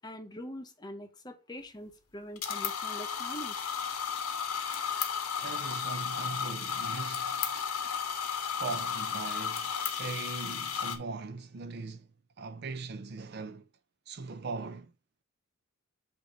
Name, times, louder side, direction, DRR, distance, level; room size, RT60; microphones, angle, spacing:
voice 1, 0.0-3.6, equal, 20° left, 0.8 m, -44 dB
sound 1, 2.4-11.0, left 7 dB, 85° left, 1.2 m, -34 dB
voice 2, 5.4-7.4 8.6-13.7 14.1-14.9, right 4 dB, 45° right, 0.5 m, -40 dB
8.2 x 2.8 x 4.9 m
head